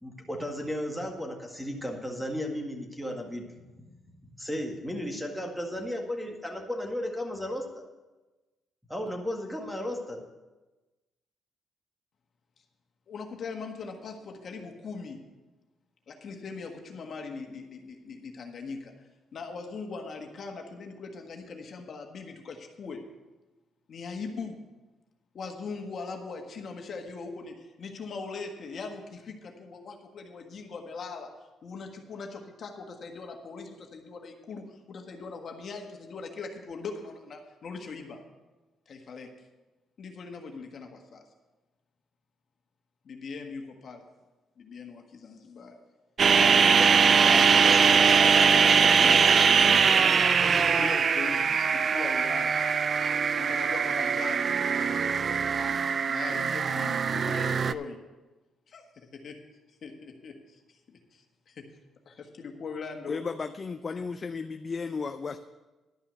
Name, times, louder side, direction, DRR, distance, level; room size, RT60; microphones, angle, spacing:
voice 1, 0.0-3.5 3.8-3.9 4.3-7.9 8.9-10.2, left 1 dB, ahead, 2 dB, 1.8 m, -34 dB
voice 2, 13.1-15.2 16.1-18.9 19.3-23.0 23.9-24.6 25.3-31.3 31.6-38.2 38.9-39.3 40.0-41.2 43.0-44.0 44.6-45.7 46.3-49.8 50.4-52.6 53.4-54.6 55.9-58.0 58.7-59.4 59.8-61.7 62.0-63.2 63.9-64.0, left 4 dB, 55° left, 4 dB, 1.6 m, -40 dB
sound 1, 46.2-57.7, right 6 dB, 45° right, 0.4 m, -22 dB
voice 3, 63.1-65.4, left 4 dB, 35° left, 9 dB, 0.5 m, -34 dB
11.5 x 5.7 x 7.9 m, 1.2 s
cardioid pair, 90°, 0 cm